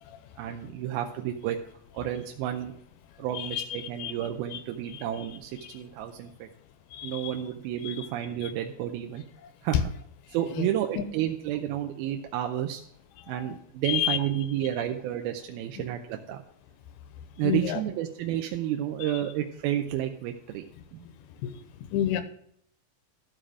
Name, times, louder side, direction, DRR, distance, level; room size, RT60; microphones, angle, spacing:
voice 1, 0.4-1.6 1.9-2.7 3.2-6.5 7.0-9.2 9.6-9.9 10.3-12.8 13.3-16.4 17.4-20.7 20.9-21.0, right 11 dB, 85° right, 4 dB, 2.5 m, -31 dB
voice 2, 3.3-4.1 4.5-4.6 4.9-5.0 5.6-5.8 6.9-7.3 7.8-8.1 8.4-8.5 10.6-10.7 11.0-11.1 13.3-13.6 13.9-14.2 17.4-17.8 21.4-21.5 21.9-22.2, left 11 dB, 90° left, 10 dB, 2.8 m, -30 dB
13.5 x 5.0 x 6.1 m, 0.68 s
omnidirectional pair, 4.4 m